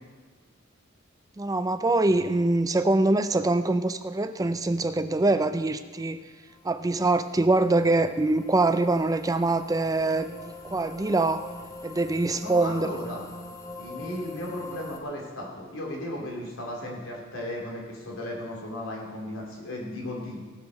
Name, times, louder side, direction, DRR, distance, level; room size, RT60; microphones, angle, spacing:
voice 1, 1.4-6.2 6.6-11.5 11.8-12.9 14.0-14.1, right 2 dB, 20° right, 10 dB, 0.4 m, -24 dB
sound 1, 6.5-15.0, left 2 dB, 15° left, 1.1 m, -43 dB
voice 2, 12.4-13.3 13.8-20.4, left 1 dB, 90° left, -2 dB, 3.5 m, -35 dB
17.0 x 6.6 x 6.4 m, 1.4 s
head